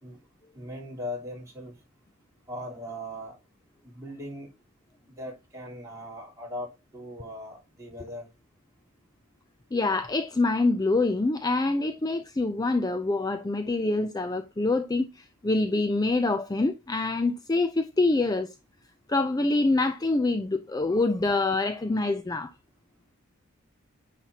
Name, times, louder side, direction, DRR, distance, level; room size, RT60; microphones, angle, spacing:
voice 1, 0.5-1.8 2.5-3.4 3.8-4.5 5.2-8.3, left 1 dB, 15° right, 3.5 m, -39 dB
voice 2, 9.7-18.5 19.1-22.5, left 2 dB, 20° left, 0.4 m, -25 dB
9.8 x 5.9 x 2.8 m
head